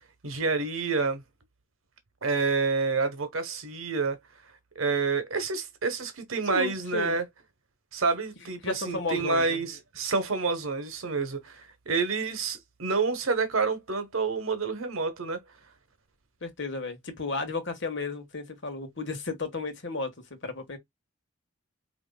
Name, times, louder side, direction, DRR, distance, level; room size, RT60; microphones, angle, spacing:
voice 1, 0.2-1.2 2.2-4.2 4.7-7.2 7.9-15.4, right 4 dB, 90° right, 1.0 m, -28 dB
voice 2, 6.5-7.2 8.6-9.6 16.4-20.8, left 3 dB, 60° left, 1.4 m, -33 dB
5.1 x 3.0 x 2.2 m
head